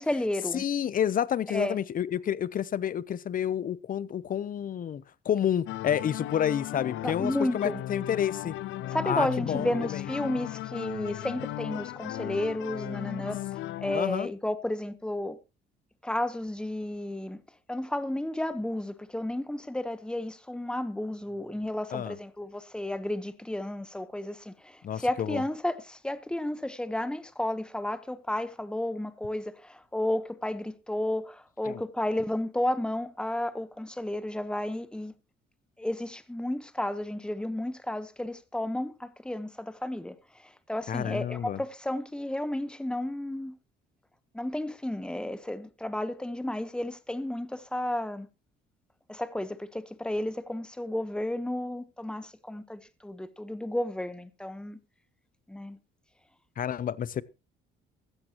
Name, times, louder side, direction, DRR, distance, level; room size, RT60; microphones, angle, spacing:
voice 1, 0.0-0.6 1.5-1.8 7.0-7.8 8.9-13.4 13.8-15.4 16.0-17.4 17.7-35.1 35.8-40.2 40.4-43.6 44.3-48.3 49.1-54.8 55.5-55.8, left 1 dB, 5° left, 1.0 m, -32 dB
voice 2, 0.5-8.5 9.0-10.0 13.9-14.3 21.9-22.2 24.8-25.4 31.7-31.8 40.9-41.6 56.6-57.2, left 9 dB, 45° left, 0.7 m, -29 dB
sound 1, 5.7-14.0, left 15 dB, 75° left, 0.6 m, -36 dB
15.5 x 13.5 x 3.0 m
cardioid pair, 115°, 20 cm